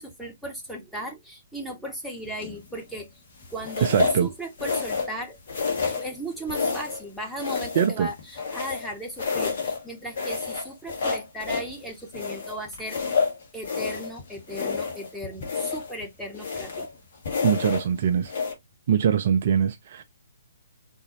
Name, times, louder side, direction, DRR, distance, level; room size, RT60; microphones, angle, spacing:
voice 1, 0.0-3.1 3.5-5.4 5.8-13.0 13.5-16.9, right 1 dB, ahead, 1.0 m, -36 dB
sound 1, 2.4-2.7 3.6-4.2 4.6-5.2 5.5-6.1 6.5-7.0 7.4-8.9 9.2-9.8 10.2-11.7 12.1-14.1 14.5-15.1 15.4-15.9 16.3-16.9 17.2-17.9 18.2-18.5, left 5 dB, 45° left, 1.5 m, -29 dB
voice 2, 3.8-4.3 7.7-8.1 17.4-18.3 18.9-20.0, right 8 dB, 40° right, 0.4 m, -22 dB
3.8 x 2.7 x 2.9 m
figure-of-eight pair, 130°, 0 cm